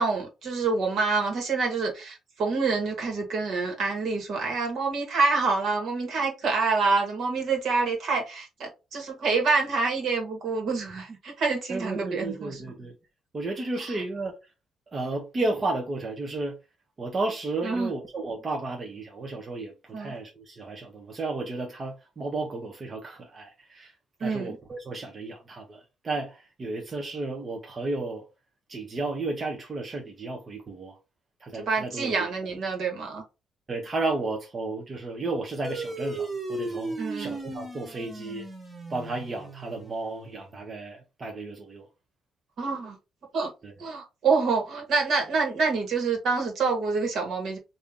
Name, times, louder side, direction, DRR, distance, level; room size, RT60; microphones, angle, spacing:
voice 1, 0.0-12.6 17.6-17.9 19.9-20.1 24.2-24.6 31.6-33.2 37.0-37.4 42.6-43.0 43.3-43.5 43.8-47.6, right 4 dB, 70° right, 1.5 m, -27 dB
voice 2, 11.7-12.9 13.3-14.3 14.9-16.6 17.0-23.9 24.2-28.2 28.7-31.0 31.4-32.3 33.7-38.5 38.9-41.9 43.6-43.7, right 2 dB, 35° right, 0.8 m, -33 dB
sound 1, 35.6-40.5, right 2 dB, 20° right, 1.2 m, -36 dB
3.4 x 2.7 x 3.6 m
cardioid pair, 90°, 0 cm